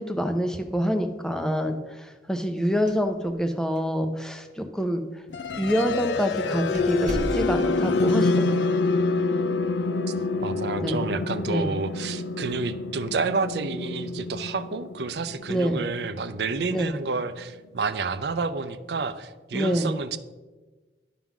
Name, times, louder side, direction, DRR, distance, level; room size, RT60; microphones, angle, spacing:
voice 1, 0.0-5.0 5.6-8.6 10.8-11.0 11.5-11.7 15.5-15.8 16.7-16.9 19.5-20.0, equal, 5° left, 5 dB, 0.6 m, -26 dB
sound 1, 2.7-3.5 3.8-3.9 4.6-4.7 5.5-5.7 6.1-6.2 6.7-7.9, equal, 45° right, 0.9 m, -34 dB
sound 2, 5.3-17.2, left 3 dB, 80° left, 0.4 m, -27 dB
voice 2, 10.4-20.2, right 4 dB, 70° right, 12 dB, 0.5 m, -29 dB
11.0 x 3.8 x 6.0 m, 1.3 s
head